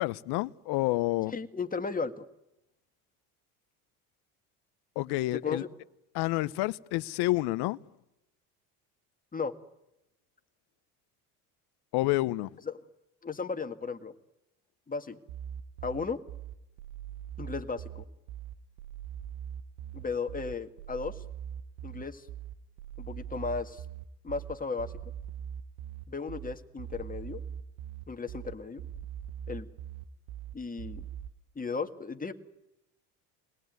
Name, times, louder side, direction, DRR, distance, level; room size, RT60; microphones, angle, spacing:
voice 1, 0.0-1.3 5.0-5.6 6.1-7.8 11.9-12.6, left 18 dB, 60° left, 0.9 m, -29 dB
voice 2, 1.3-2.2 5.4-5.7 9.3-9.5 13.2-14.1 14.9-15.2 15.8-16.2 17.4-18.1 19.9-21.2 21.8-22.3 23.0-23.8 24.2-24.9 26.1-27.4 28.1-28.8 29.5-29.7 30.5-31.0 31.6-32.3, left 4 dB, 20° left, 1.9 m, -35 dB
sound 1, 15.3-31.3, right 9 dB, 75° right, 1.4 m, -42 dB
25.5 x 19.0 x 9.5 m
hypercardioid pair, 80°, 43 cm